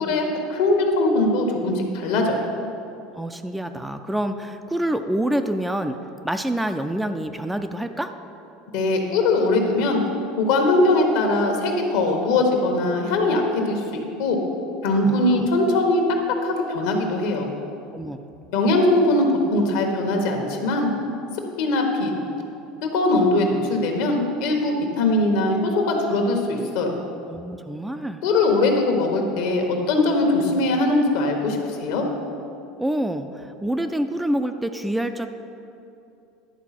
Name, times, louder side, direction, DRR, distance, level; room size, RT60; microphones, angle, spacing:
voice 1, 0.0-2.5 8.7-10.0 10.4-14.4 14.8-16.0 16.4-17.5 18.5-20.9 21.6-22.1 22.8-27.0 28.2-32.0, left 2 dB, 70° left, 3 dB, 1.3 m, -21 dB
voice 2, 3.1-6.0 6.2-8.1 14.9-15.5 17.9-18.2 27.3-28.2 32.8-35.3, right 1 dB, 5° right, 7 dB, 0.4 m, -27 dB
10.5 x 4.0 x 5.9 m, 2.7 s
hypercardioid pair, 90°, 0 cm